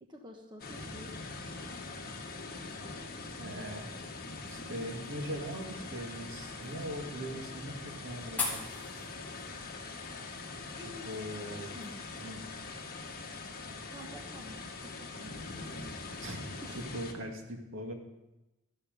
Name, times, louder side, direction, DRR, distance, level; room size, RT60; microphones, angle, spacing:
voice 1, 0.0-1.4 10.8-11.1 11.7-12.0 13.9-15.3 16.6-16.8, left 1 dB, 20° right, 2 dB, 1.2 m, -49 dB
sound 1, 0.6-17.1, left 3 dB, 45° left, 1.6 m, -43 dB
voice 2, 3.4-3.9 4.4-8.7 10.8-11.7 12.2-12.4 16.2-16.4 16.8-17.9, equal, 60° right, 2 dB, 2.2 m, -41 dB
sound 2, 3.5-11.9, left 4 dB, 5° left, 3.6 m, -45 dB
13.0 x 12.5 x 5.2 m, 0.98 s
head